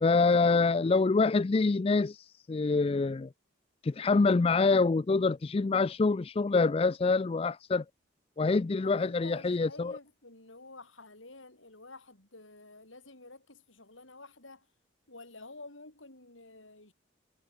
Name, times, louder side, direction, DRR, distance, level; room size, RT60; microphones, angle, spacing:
voice 1, 0.0-3.3 3.8-7.8 8.4-9.9, left 3 dB, 30° left, 0.3 m, -26 dB
voice 2, 8.8-14.7 15.1-16.9, left 2 dB, 85° left, 6.8 m, -50 dB
head